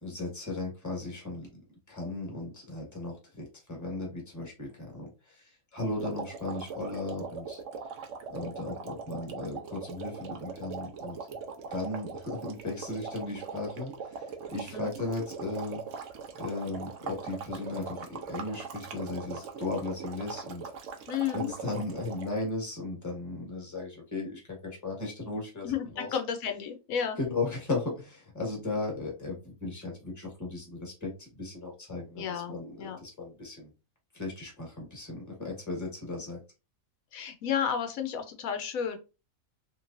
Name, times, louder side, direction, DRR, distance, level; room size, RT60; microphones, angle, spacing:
voice 1, 0.0-1.6 1.9-11.2 11.7-16.1 16.3-20.7 21.0-26.2 27.2-33.7 34.1-36.4, left 2 dB, 15° left, 0 dB, 1.2 m, -36 dB
sound 1, 6.0-22.4, right 6 dB, 70° right, 1.0 m, -41 dB
voice 2, 21.1-21.5 25.6-27.2 32.2-33.0 37.1-39.0, left 8 dB, 80° left, 5 dB, 1.0 m, -32 dB
3.1 x 3.0 x 2.5 m, 0.29 s
omnidirectional pair, 1.4 m